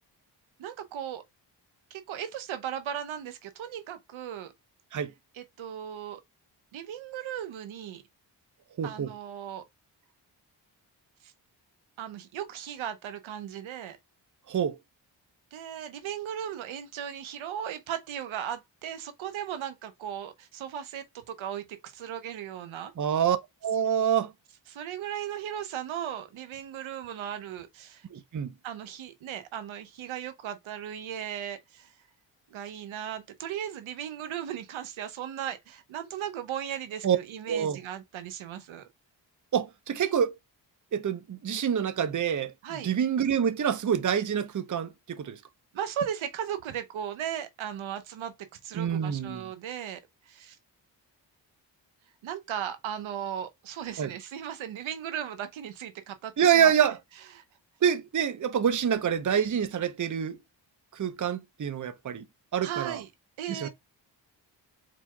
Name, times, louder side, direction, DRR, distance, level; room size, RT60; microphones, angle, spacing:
voice 1, 0.6-1.2 1.9-4.5 5.3-6.2 6.7-8.0 8.8-9.7 11.2-11.3 12.0-14.0 15.5-22.9 24.7-28.1 28.6-31.9 32.5-38.8 42.6-42.9 45.7-50.0 50.3-50.6 52.2-56.7 57.3-57.4 62.6-63.1 63.4-63.7, right 9 dB, 85° right, 0.9 m, -37 dB
voice 2, 8.8-9.1 14.5-14.8 23.0-23.4 23.6-24.3 28.1-28.5 37.0-37.2 37.5-37.8 39.5-40.3 40.9-42.5 42.8-45.4 48.7-49.5 54.0-54.1 56.4-57.0 57.8-60.4 60.9-62.2 62.5-63.0 63.5-63.7, right 8 dB, 40° right, 0.8 m, -26 dB
4.4 x 4.1 x 2.3 m
cardioid pair, 55°, 46 cm